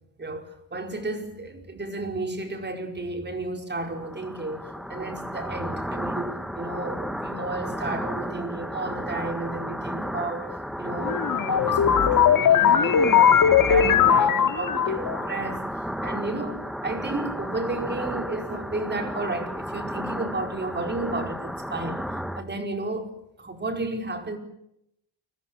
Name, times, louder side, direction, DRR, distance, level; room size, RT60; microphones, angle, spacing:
voice 1, 0.2-15.6 16.0-22.0 22.3-24.4, right 2 dB, 25° right, 5.1 m, -33 dB
sound 1, 3.8-22.4, equal, ahead, 1.7 m, -33 dB
sound 2, 11.0-15.2, left 8 dB, 50° left, 2.5 m, -19 dB
30.0 x 21.5 x 7.8 m
cardioid pair, 110°, 42 cm